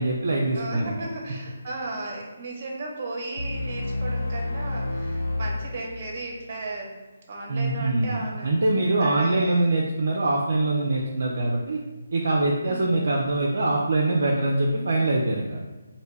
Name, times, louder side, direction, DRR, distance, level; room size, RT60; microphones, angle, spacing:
voice 1, 0.0-0.9 7.5-11.8 12.1-15.6, right 2 dB, 60° right, -2 dB, 0.4 m, -23 dB
voice 2, 0.5-7.0 7.3-8.5 9.0-9.8 12.6-13.0, right 2 dB, 40° right, 0 dB, 0.8 m, -35 dB
sound 1, 3.4-6.3, left 2 dB, 65° left, 0.5 m, -30 dB
3.3 x 2.5 x 3.1 m, 1.2 s
figure-of-eight pair, 145°, 0 cm